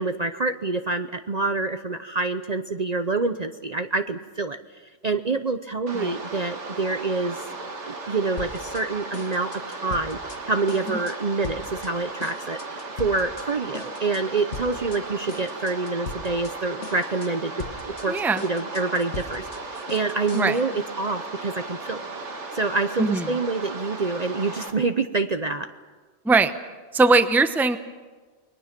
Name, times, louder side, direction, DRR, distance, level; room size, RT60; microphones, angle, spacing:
voice 1, 0.0-4.6 5.0-7.4 7.9-17.5 17.9-22.0 22.5-25.7, right 3 dB, 40° right, 8 dB, 0.8 m, -27 dB
sound 1, 5.9-24.7, right 3 dB, 70° right, 2.1 m, -36 dB
sound 2, 8.4-8.9 9.1-10.4 10.7-11.2 11.4-11.9 12.2-13.5 13.7-14.2 14.5-15.0 15.3-16.5 16.8-17.3 17.6-20.6, left 4 dB, 75° left, 1.8 m, -39 dB
voice 2, 18.1-18.5 20.3-20.6 23.0-23.2 26.2-26.5 26.9-27.8, right 3 dB, ahead, 9 dB, 0.7 m, -20 dB
29.5 x 21.5 x 6.0 m, 1.4 s
omnidirectional pair, 1.3 m